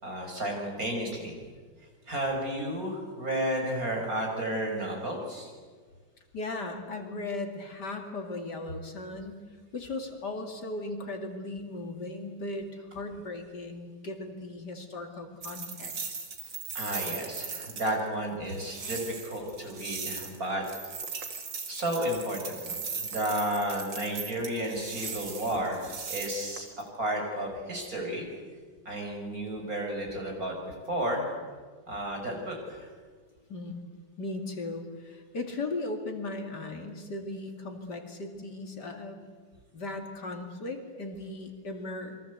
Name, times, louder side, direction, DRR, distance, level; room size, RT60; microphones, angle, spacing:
voice 1, 0.0-1.4 2.1-5.5 16.7-20.7 21.7-26.7 27.0-28.3 28.8-31.3 31.9-32.9, right 1 dB, 45° right, 1 dB, 6.0 m, -32 dB
voice 2, 6.3-16.2 23.0-23.1 33.5-33.8 34.2-39.2 39.7-42.2, left 2 dB, 55° left, 4 dB, 3.0 m, -37 dB
sound 1, 15.4-18.0 18.5-20.4 20.6-26.8, right 5 dB, 65° right, 2.9 m, -38 dB
28.0 x 23.0 x 8.2 m, 1.5 s
omnidirectional pair, 2.1 m